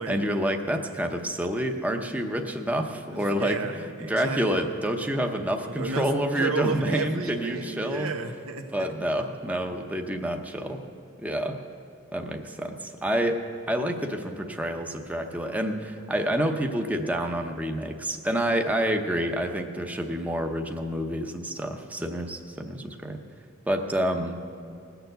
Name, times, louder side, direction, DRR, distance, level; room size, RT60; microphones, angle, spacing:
voice 1, 0.1-3.6 4.1-8.1 8.7-10.8 11.2-11.6 12.1-23.2 23.7-24.4, equal, 5° right, 4 dB, 0.7 m, -28 dB
voice 2, 3.1-4.7 5.7-8.9, right 4 dB, 90° right, 4 dB, 1.2 m, -33 dB
19.5 x 7.0 x 7.8 m, 2.5 s
head